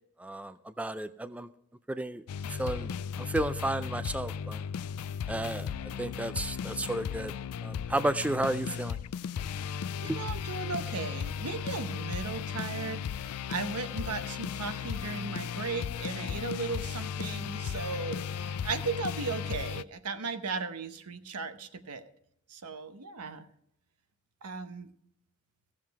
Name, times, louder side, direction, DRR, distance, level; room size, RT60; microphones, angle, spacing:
voice 1, 0.2-1.5 1.9-2.2 2.5-4.6 5.3-7.3 7.6-9.0 10.1-10.2, right 1 dB, 5° right, 12 dB, 0.3 m, -33 dB
sound 1, 2.3-19.8, left 7 dB, 75° left, 0.4 m, -36 dB
voice 2, 10.0-22.0 22.5-23.5 24.4-24.9, right 4 dB, 90° right, 10 dB, 0.9 m, -36 dB
15.5 x 7.4 x 4.7 m, 0.75 s
head